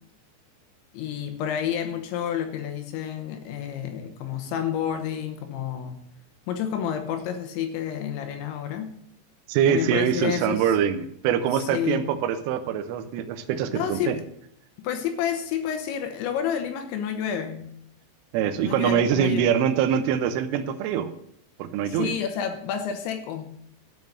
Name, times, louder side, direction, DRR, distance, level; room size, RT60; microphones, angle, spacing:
voice 1, 0.9-6.0 6.5-8.9 9.7-10.8 11.6-12.0 13.7-14.2 14.8-17.7 18.6-19.5 21.9-23.6, left 9 dB, 80° left, 7 dB, 3.1 m, -30 dB
voice 2, 9.5-14.2 18.3-21.1 21.6-22.1, right 8 dB, 85° right, 9 dB, 3.3 m, -24 dB
13.0 x 5.4 x 7.7 m, 0.70 s
omnidirectional pair, 5.7 m